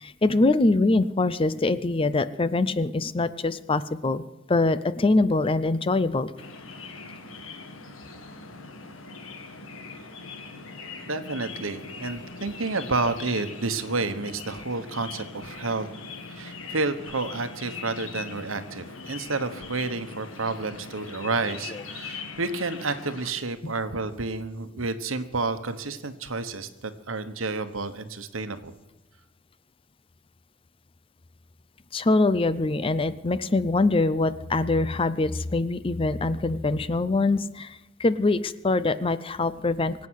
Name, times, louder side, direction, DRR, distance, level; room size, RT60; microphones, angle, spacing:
voice 1, 0.0-4.2 4.5-6.3 31.9-37.7 38.0-40.1, left 2 dB, 25° left, 15 dB, 0.5 m, -23 dB
sound 1, 6.4-23.3, left 4 dB, 85° left, 1.8 m, -41 dB
voice 2, 11.1-15.9 16.3-28.7, right 3 dB, 85° right, 10 dB, 1.2 m, -30 dB
24.0 x 8.5 x 6.4 m, 0.97 s
head